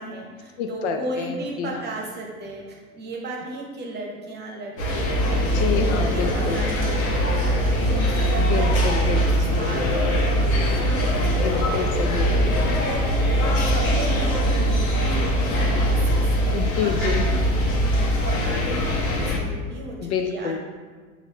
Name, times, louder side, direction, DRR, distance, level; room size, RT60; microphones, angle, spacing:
voice 1, 0.0-8.8 9.1-11.8 12.3-14.8 15.1-20.6, right 2 dB, 25° right, -1 dB, 0.9 m, -36 dB
voice 2, 0.6-1.8 5.5-6.6 8.3-9.3 11.4-12.5 16.5-17.4 20.0-20.6, left 6 dB, 55° left, 5 dB, 0.5 m, -28 dB
sound 1, 4.8-19.4, equal, 75° left, 1.2 m, -22 dB
6.2 x 2.6 x 3.0 m, 1.5 s
hypercardioid pair, 95°, 42 cm